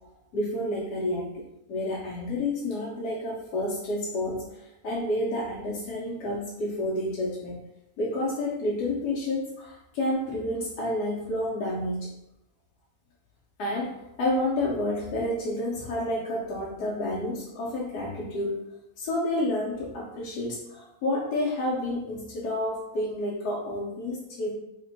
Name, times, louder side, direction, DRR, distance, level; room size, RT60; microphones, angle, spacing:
voice 1, 0.3-1.2 1.7-7.6 8.0-12.2 13.6-18.6 19.0-24.5, left 1 dB, 85° left, -5 dB, 1.2 m, -30 dB
3.0 x 2.1 x 3.9 m, 0.86 s
omnidirectional pair, 1.7 m